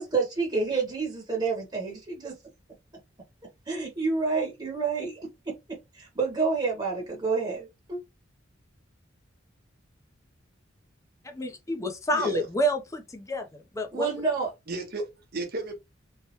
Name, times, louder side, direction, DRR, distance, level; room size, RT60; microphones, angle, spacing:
voice 1, 0.0-2.4 3.7-5.2 5.5-5.6 5.9-8.0 13.9-14.5, right 4 dB, 25° right, 0.9 m, -28 dB
voice 2, 11.2-14.1, equal, 15° left, 0.5 m, -29 dB
voice 3, 12.1-12.4 14.7-15.7, right 2 dB, 50° right, 0.8 m, -34 dB
3.1 x 2.1 x 2.8 m
head